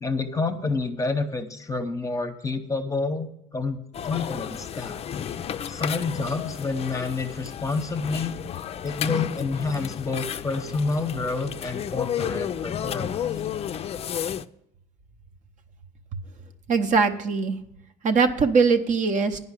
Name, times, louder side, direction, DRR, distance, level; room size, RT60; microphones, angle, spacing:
voice 1, 0.0-5.0 5.7-8.4 8.8-13.3, left 3 dB, 20° left, 7 dB, 0.8 m, -29 dB
sound 1, 3.9-14.4, left 9 dB, 35° left, 0.4 m, -32 dB
voice 2, 16.7-17.6 18.0-19.4, right 5 dB, 45° right, 7 dB, 0.8 m, -21 dB
9.6 x 5.4 x 8.1 m, 0.78 s
cardioid pair, 110°, 18 cm